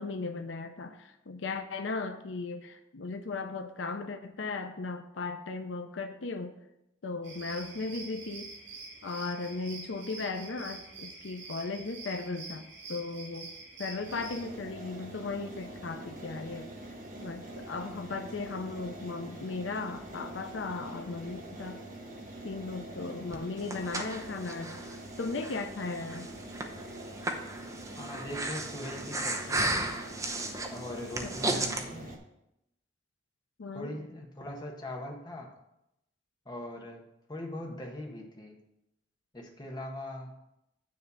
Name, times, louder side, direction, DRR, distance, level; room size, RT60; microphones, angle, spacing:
voice 1, 0.0-6.5 7.0-8.5 9.0-13.5 13.8-16.7 17.2-21.8 22.4-24.8 25.2-26.3 31.2-31.8 33.6-33.9, left 3 dB, 85° left, 7 dB, 0.6 m, -37 dB
sound 1, 7.2-14.4, right 3 dB, 85° right, 2.5 m, -46 dB
sound 2, 13.9-32.2, right 1 dB, 45° right, 1.3 m, -44 dB
Breathing, 23.3-31.8, right 2 dB, 20° right, 0.7 m, -35 dB
voice 2, 27.9-29.9 30.7-32.1 33.7-35.5 36.4-37.0 37.3-38.6 39.3-40.3, left 1 dB, 25° left, 0 dB, 1.3 m, -41 dB
9.6 x 3.3 x 6.9 m, 0.85 s
head